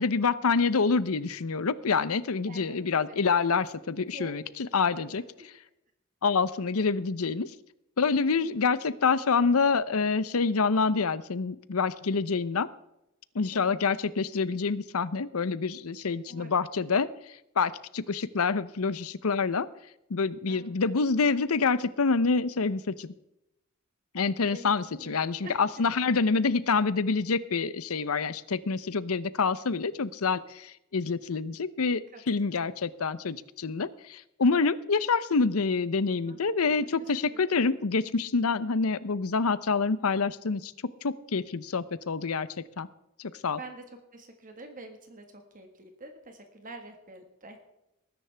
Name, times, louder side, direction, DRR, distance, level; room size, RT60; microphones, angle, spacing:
voice 1, 0.0-5.2 6.2-7.5 8.0-12.7 13.3-17.1 17.6-19.7 20.1-23.1 24.1-40.7 41.0-42.5 42.8-42.9 43.2-43.6, left 4 dB, 85° left, 16 dB, 0.7 m, -27 dB
voice 2, 2.4-3.2 4.1-4.3 4.8-5.5 8.2-8.6 13.5-13.9 16.3-16.6 20.5-20.7 24.5-24.7 24.9-25.6 32.1-32.7 36.3-36.4 36.7-37.6 43.6-47.6, right 2 dB, 40° right, 5 dB, 1.6 m, -47 dB
19.5 x 10.5 x 3.4 m, 0.87 s
head